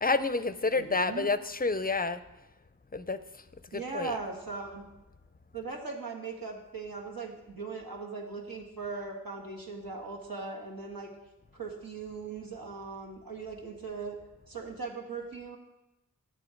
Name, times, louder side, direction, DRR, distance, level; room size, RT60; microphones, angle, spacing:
voice 1, 0.0-2.2 2.9-3.2 3.7-4.2, left 3 dB, 25° left, 13 dB, 0.5 m, -29 dB
voice 2, 0.7-1.3 3.7-4.8 5.5-11.1 11.5-14.2 14.5-15.6, right 4 dB, 80° right, 1 dB, 1.6 m, -39 dB
8.9 x 6.9 x 5.1 m, 0.98 s
wide cardioid pair, 55°, 35 cm